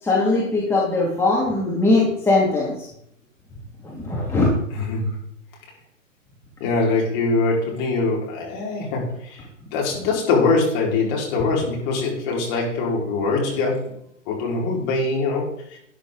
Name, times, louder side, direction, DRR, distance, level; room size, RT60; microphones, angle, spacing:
voice 1, 0.0-2.9 3.8-4.5, left 2 dB, 5° left, -4 dB, 2.5 m, -20 dB
voice 2, 6.6-9.4 9.7-13.9 14.3-15.8, left 3 dB, 35° left, -2 dB, 4.7 m, -23 dB
12.5 x 10.0 x 4.0 m, 0.72 s
figure-of-eight pair, 120°, 39 cm